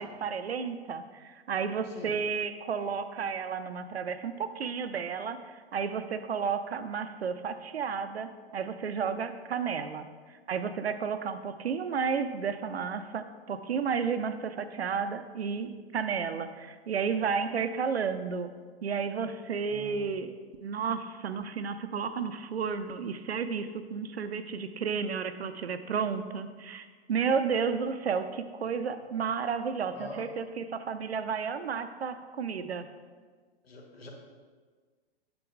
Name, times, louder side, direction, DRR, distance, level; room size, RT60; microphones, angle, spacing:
voice 1, 0.0-18.5 18.8-20.3 20.6-32.9, right 6 dB, 75° right, 10 dB, 0.5 m, -32 dB
voice 2, 19.7-20.1 29.9-30.3 33.6-34.1, left 2 dB, 65° left, 0 dB, 1.4 m, -44 dB
7.5 x 4.7 x 3.7 m, 1.5 s
figure-of-eight pair, 105°, 32 cm